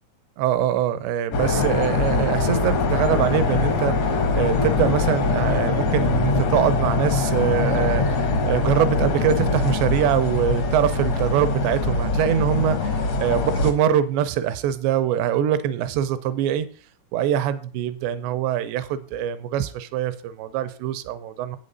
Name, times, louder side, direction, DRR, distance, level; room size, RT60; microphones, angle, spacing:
voice 1, 0.4-16.7 17.1-21.6, right 10 dB, 85° right, 12 dB, 2.6 m, -23 dB
sound 1, 1.3-13.7, left 3 dB, 75° left, 1.5 m, -22 dB
8.5 x 7.6 x 5.3 m, 0.41 s
omnidirectional pair, 5.6 m